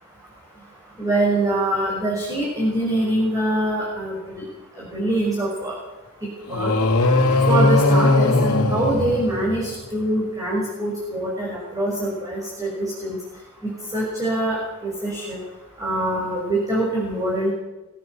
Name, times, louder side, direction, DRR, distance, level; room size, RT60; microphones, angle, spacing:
voice 1, 1.0-4.4 4.8-5.7 6.5-6.7 7.5-13.2 13.6-15.4 15.8-17.5, right 1 dB, 15° right, -4 dB, 6.3 m, -24 dB
sound 1, 6.5-9.8, left 2 dB, 75° left, 3.0 m, -19 dB
23.5 x 16.5 x 8.1 m, 1.1 s
head